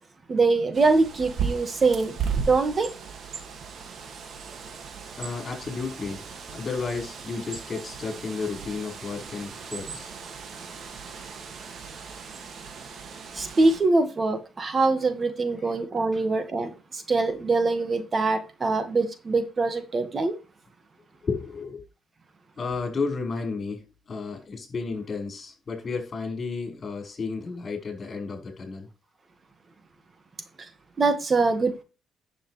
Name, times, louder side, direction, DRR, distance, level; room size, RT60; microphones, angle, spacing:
voice 1, 0.3-2.9 13.3-20.4 31.0-31.8, right 3 dB, 35° right, 1.8 m, -23 dB
Bird, 0.7-13.8, right 6 dB, 60° right, 2.2 m, -37 dB
voice 2, 5.2-6.3 6.5-10.1 12.1-12.3 16.1-16.2 21.2-21.8 22.6-28.9, left 4 dB, 40° left, 5.4 m, -32 dB
10.5 x 7.3 x 3.3 m
cardioid pair, 90°, 0 cm